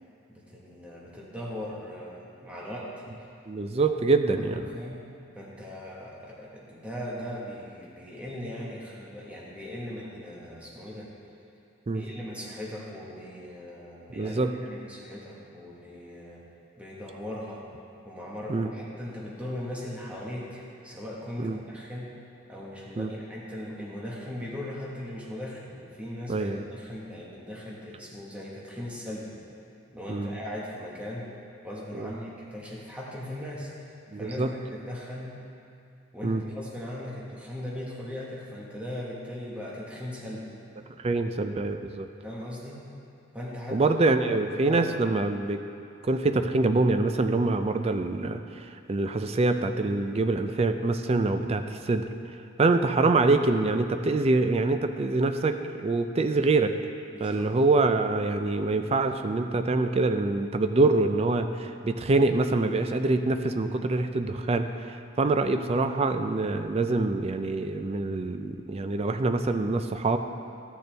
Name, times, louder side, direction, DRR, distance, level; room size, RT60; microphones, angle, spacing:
voice 1, 0.3-2.9 3.8-4.0 4.3-5.0 5.3-11.1 11.9-16.4 16.8-17.6 18.0-22.1 22.5-29.3 29.9-31.3 31.6-33.7 34.1-35.3 36.1-40.5 42.2-42.9 43.3-43.8 44.6-44.9 51.4-51.6 57.1-57.5, left 1 dB, 5° right, -6 dB, 1.4 m, -39 dB
voice 2, 3.5-4.7 11.9-12.0 14.1-14.5 18.5-18.7 21.4-21.6 23.0-23.1 26.3-26.6 30.1-30.3 31.9-32.1 34.1-34.5 36.2-36.4 41.0-42.1 43.7-45.6 46.0-51.6 51.9-52.1 52.6-56.7 57.2-70.2, right 3 dB, 30° right, 7 dB, 0.4 m, -25 dB
13.5 x 6.7 x 3.4 m, 2.6 s
head